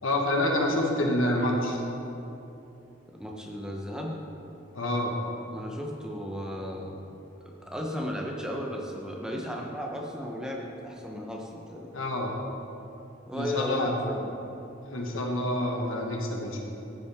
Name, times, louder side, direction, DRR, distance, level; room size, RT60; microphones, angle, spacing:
voice 1, 0.0-1.8 4.7-5.2 11.9-12.3 13.3-14.0 14.9-16.6, left 1 dB, 85° left, 1 dB, 1.2 m, -27 dB
voice 2, 3.1-4.1 5.5-7.0 7.6-11.9 13.3-14.3, equal, 5° right, -1 dB, 0.7 m, -35 dB
14.0 x 5.7 x 3.5 m, 2.9 s
head